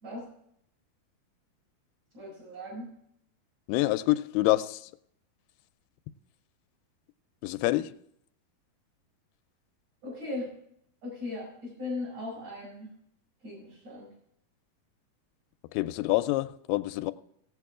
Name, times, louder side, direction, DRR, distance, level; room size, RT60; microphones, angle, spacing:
voice 1, 2.1-3.0 10.0-10.5 11.0-12.9 13.4-14.1, left 2 dB, 45° right, 6.6 m, -38 dB
voice 2, 3.7-4.9 7.4-8.0 15.7-17.1, left 18 dB, 90° left, 2.5 m, -27 dB
18.0 x 8.3 x 3.6 m
omnidirectional pair, 4.5 m